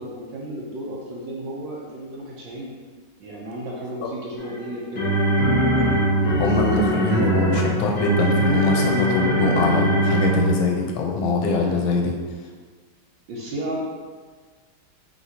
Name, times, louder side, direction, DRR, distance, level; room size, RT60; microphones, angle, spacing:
voice 1, 0.0-2.7 3.2-5.1 13.3-13.8, right 1 dB, 75° right, -4 dB, 1.4 m, -33 dB
sound 1, 4.4-10.8, right 1 dB, 50° left, 1.3 m, -21 dB
voice 2, 6.4-12.2, left 2 dB, 85° left, 0 dB, 1.4 m, -23 dB
5.1 x 2.9 x 2.8 m, 1.5 s
omnidirectional pair, 2.1 m